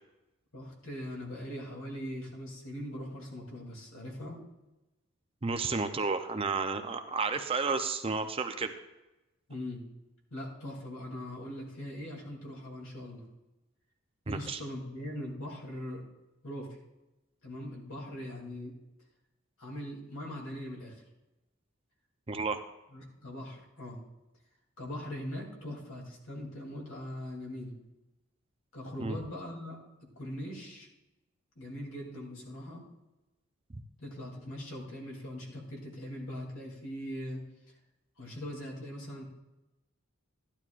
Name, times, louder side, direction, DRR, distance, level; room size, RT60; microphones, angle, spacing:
voice 1, 0.5-4.4 9.5-9.8 10.3-13.2 14.3-16.0 16.4-16.8 17.4-18.7 19.6-21.0 22.9-24.0 24.8-27.7 28.7-29.8 30.2-30.9 31.6-32.8 34.0-37.4 37.7-37.8 38.2-39.2, left 1 dB, 80° left, -1 dB, 2.9 m, -41 dB
voice 2, 5.4-8.7 14.3-14.6 22.3-22.6 29.0-29.2 33.7-33.8, right 4 dB, 25° right, 7 dB, 0.5 m, -32 dB
12.5 x 11.5 x 2.4 m, 0.98 s
head